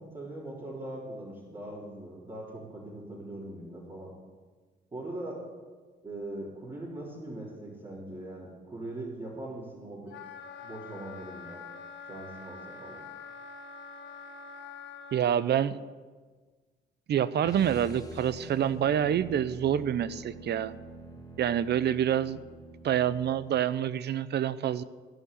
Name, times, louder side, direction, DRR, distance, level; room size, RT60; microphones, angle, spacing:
voice 1, 0.0-4.1 4.9-5.4 6.0-10.1 10.6-11.6 12.1-13.0, right 1 dB, 25° right, -7 dB, 3.8 m, -41 dB
Wind instrument woodwind instrument, 10.1-15.3, left 5 dB, 65° left, 1.5 m, -45 dB
voice 2, 15.1-15.7 17.1-20.7 21.4-22.4 22.8-24.8, right 10 dB, 55° right, 15 dB, 0.7 m, -27 dB
sound 1, 17.4-23.5, equal, 20° left, 2.3 m, -46 dB
16.0 x 5.6 x 10.0 m, 1.4 s
cardioid pair, 90°, 20 cm